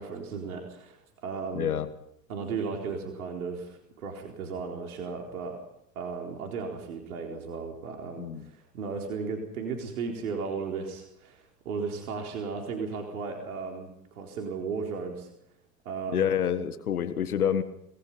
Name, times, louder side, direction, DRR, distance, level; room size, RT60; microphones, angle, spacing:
voice 1, 0.0-1.7 2.3-5.6 6.0-15.3 15.8-16.3, right 5 dB, 80° right, 2 dB, 4.2 m, -35 dB
voice 2, 1.5-1.9 8.2-8.5 16.1-17.6, left 8 dB, 90° left, 12 dB, 1.7 m, -27 dB
27.5 x 20.0 x 5.7 m, 0.78 s
hypercardioid pair, 80°, 43 cm